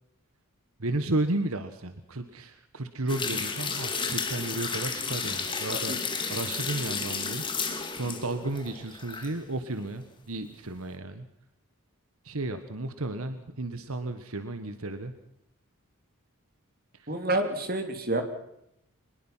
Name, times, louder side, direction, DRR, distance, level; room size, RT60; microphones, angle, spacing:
voice 1, 0.8-6.0 6.3-7.4 7.9-11.3 12.2-15.1 16.9-17.1, right 2 dB, 75° right, 9 dB, 1.5 m, -33 dB
sound 1, 3.1-9.3 9.7-9.8, left 5 dB, 20° left, 2.6 m, -32 dB
voice 2, 17.1-18.2, right 2 dB, 40° right, 6 dB, 3.1 m, -29 dB
23.5 x 21.0 x 5.8 m, 0.78 s
head